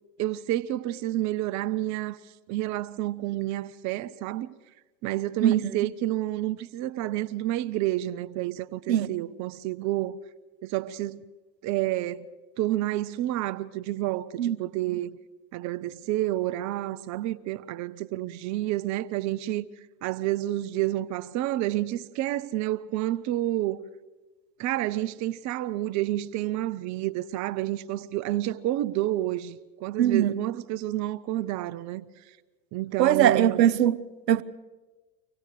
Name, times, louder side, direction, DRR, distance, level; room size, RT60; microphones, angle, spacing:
voice 1, 0.2-2.2 2.5-4.5 5.0-10.2 10.6-11.2 11.6-12.3 12.6-15.2 15.5-19.6 20.0-23.8 24.6-32.0 32.7-33.6, right 15 dB, 35° right, 0.6 m, -29 dB
voice 2, 5.4-5.9 8.9-9.1 14.4-14.6 14.9-15.0 30.0-30.4 33.0-34.4, right 11 dB, 85° right, 0.8 m, -22 dB
25.0 x 17.5 x 6.6 m
hypercardioid pair, 90°, 49 cm